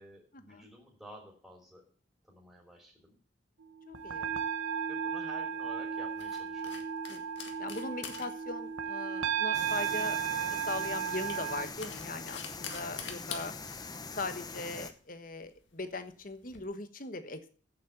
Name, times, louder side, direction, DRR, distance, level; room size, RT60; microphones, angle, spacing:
voice 1, 0.0-1.8 2.2-3.2 4.9-6.8, equal, 5° right, -3 dB, 3.0 m, -52 dB
sound 1, 3.8-11.7, right 7 dB, 90° right, 1.1 m, -34 dB
voice 2, 3.9-4.3 7.1-7.2 7.6-10.2 10.5-13.5 14.1-17.5, left 3 dB, 45° left, 10 dB, 1.2 m, -40 dB
sound 2, 4.0-16.6, left 7 dB, 60° left, 1.9 m, -48 dB
sound 3, 9.5-14.9, left 4 dB, 20° left, 0.9 m, -43 dB
8.5 x 7.8 x 9.0 m, 0.42 s
head